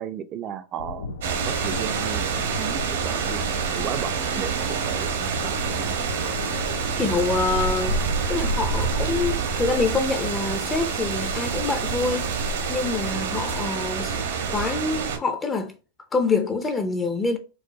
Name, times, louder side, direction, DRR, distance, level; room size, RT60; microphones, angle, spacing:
voice 1, 0.0-3.5 3.7-6.0, right 9 dB, 35° right, 0.4 m, -35 dB
sound 1, 0.8-8.1, left 5 dB, 85° left, 0.5 m, -39 dB
sound 2, 1.2-15.2, right 5 dB, 80° right, 1.1 m, -27 dB
voice 2, 7.0-8.0 8.3-15.7 16.1-17.4, left 3 dB, 20° left, 0.5 m, -26 dB
4.7 x 2.2 x 2.7 m
hypercardioid pair, 125°, 0 cm